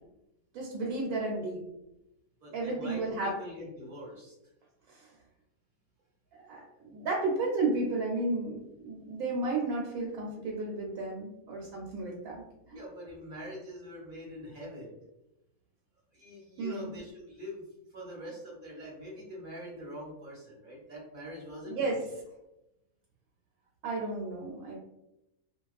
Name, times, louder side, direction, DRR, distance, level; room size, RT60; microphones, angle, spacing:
voice 1, 0.5-1.6 2.5-3.3 4.9-5.1 6.3-12.4 16.6-16.9 21.7-22.0 23.8-24.8, right 2 dB, 80° right, -2 dB, 1.0 m, -33 dB
voice 2, 2.4-4.3 12.6-15.0 16.1-17.6 17.9-21.9, equal, 45° right, -3 dB, 0.8 m, -44 dB
2.3 x 2.3 x 2.3 m, 0.89 s
omnidirectional pair, 1.5 m